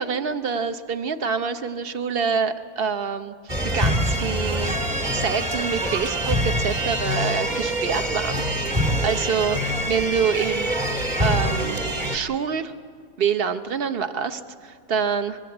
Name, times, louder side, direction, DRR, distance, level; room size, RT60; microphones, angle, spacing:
voice 1, 0.0-3.3 3.7-4.7 5.1-8.4 9.0-10.8 11.2-11.8 12.1-12.7 13.2-15.4, right 6 dB, 45° right, 10 dB, 0.7 m, -26 dB
sound 1, 3.5-12.2, equal, 25° right, 2.0 m, -25 dB
24.0 x 21.5 x 7.9 m, 2.2 s
omnidirectional pair, 2.2 m